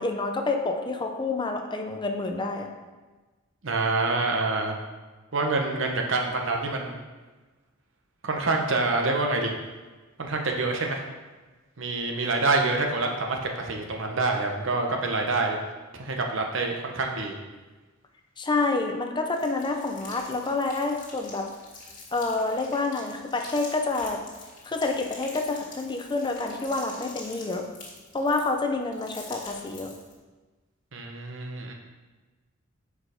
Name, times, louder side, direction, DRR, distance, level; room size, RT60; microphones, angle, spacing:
voice 1, 0.0-2.7 18.4-21.5 22.1-24.2 24.6-27.7 28.1-29.9, left 3 dB, 25° left, 3 dB, 0.6 m, -28 dB
voice 2, 3.6-4.8 5.3-7.0 8.2-9.5 10.2-11.0 11.8-15.6 15.9-17.3 30.9-31.7, right 3 dB, 65° right, 2 dB, 0.9 m, -26 dB
sound 1, 19.3-30.2, left 3 dB, 45° left, 1.9 m, -46 dB
6.4 x 4.9 x 5.0 m, 1.3 s
head